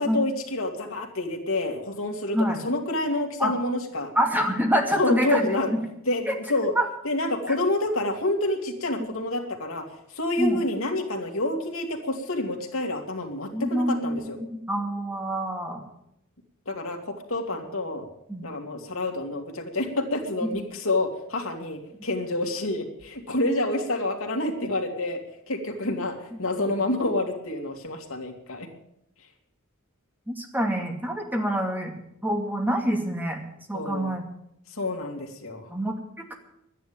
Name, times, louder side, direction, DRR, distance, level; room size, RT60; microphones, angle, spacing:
voice 1, 0.0-2.4 2.6-4.1 5.0-5.7 6.1-6.7 7.0-14.4 16.7-18.1 18.4-25.2 25.5-28.7 33.7-34.1 34.7-35.7, left 2 dB, 70° left, 2 dB, 2.5 m, -28 dB
voice 2, 4.2-5.5 6.3-6.4 6.8-6.9 10.4-10.6 13.5-15.8 18.3-18.4 26.6-26.7 30.3-31.9 32.2-33.4 33.7-34.2 35.7-36.0, equal, 10° right, 2 dB, 2.4 m, -26 dB
12.0 x 10.0 x 8.7 m, 0.79 s
head